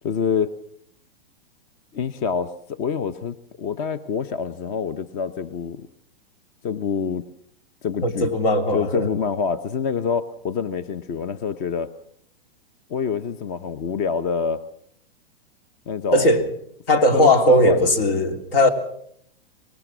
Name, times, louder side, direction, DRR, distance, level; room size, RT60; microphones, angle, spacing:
voice 1, 0.0-0.5 1.9-5.8 6.6-7.3 7.8-8.3 8.7-11.9 12.9-14.6 15.9-16.3 17.1-17.9, left 6 dB, 35° left, 14 dB, 0.8 m, -26 dB
voice 2, 8.0-9.1 16.1-16.4 16.9-18.7, left 1 dB, 70° left, 8 dB, 3.4 m, -18 dB
24.0 x 20.0 x 6.1 m, 0.68 s
hypercardioid pair, 140°, 30 cm